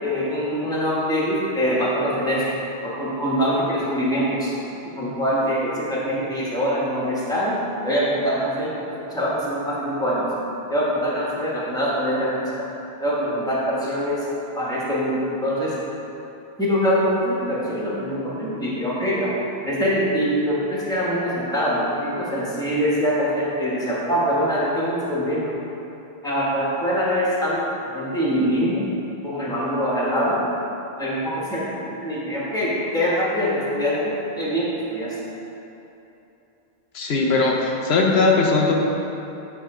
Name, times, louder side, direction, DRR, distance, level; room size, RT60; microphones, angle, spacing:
voice 1, 0.0-2.5 2.8-4.5 4.9-7.6 7.8-10.3 10.7-12.6 13.0-14.2 14.5-15.8 16.6-19.3 19.6-25.5 26.2-28.9 29.2-30.4 31.0-35.1, equal, 5° left, -7 dB, 1.4 m, -24 dB
voice 2, 36.9-38.7, left 3 dB, 80° left, -1 dB, 1.0 m, -19 dB
8.7 x 3.6 x 4.9 m, 3.0 s
omnidirectional pair, 1.1 m